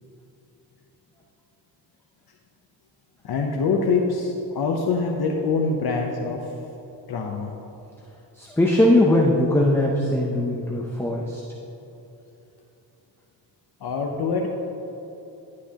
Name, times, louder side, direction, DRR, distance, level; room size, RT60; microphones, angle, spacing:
voice 1, 3.2-6.4 7.1-7.5 13.8-14.5, left 4 dB, 60° left, 1 dB, 0.8 m, -24 dB
voice 2, 8.4-11.4, left 1 dB, 5° left, -2 dB, 0.6 m, -20 dB
11.5 x 9.6 x 2.9 m, 3.0 s
wide cardioid pair, 150°, 43 cm